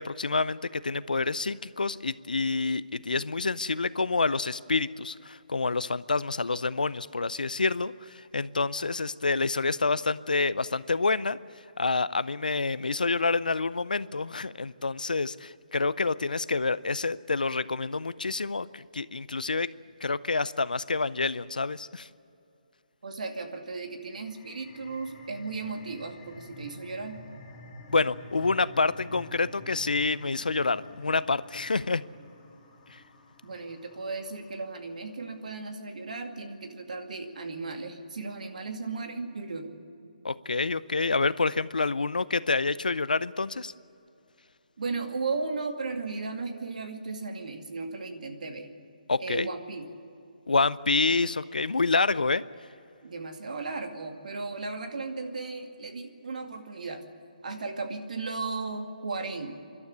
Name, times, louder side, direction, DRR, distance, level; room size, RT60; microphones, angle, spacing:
voice 1, 0.0-11.4 11.8-19.7 20.0-22.1 27.9-32.0 40.2-43.7 49.1-49.5 50.5-52.4, left 3 dB, 85° left, 17 dB, 0.6 m, -28 dB
voice 2, 23.0-27.2 33.4-39.8 44.8-48.7 49.2-49.8 53.0-57.0 57.4-59.5, right 3 dB, 65° right, 4 dB, 2.3 m, -35 dB
sound 1, 24.0-35.2, left 2 dB, 30° left, 3.5 m, -49 dB
25.0 x 12.5 x 9.8 m, 2.7 s
figure-of-eight pair, 145°, 4 cm